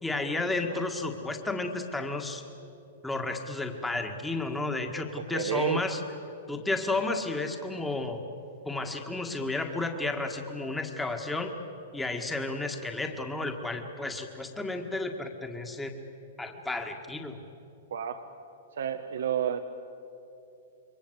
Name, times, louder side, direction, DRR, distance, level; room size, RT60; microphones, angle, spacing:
voice 1, 0.0-2.4 3.0-6.0 6.5-8.2 8.7-11.5 11.9-15.9 16.4-17.4, left 2 dB, 5° left, 4 dB, 1.9 m, -32 dB
voice 2, 5.2-5.8 17.9-18.2 18.7-19.6, right 9 dB, 80° right, 7 dB, 1.2 m, -30 dB
27.5 x 22.5 x 8.2 m, 2.9 s
hypercardioid pair, 135°, 0 cm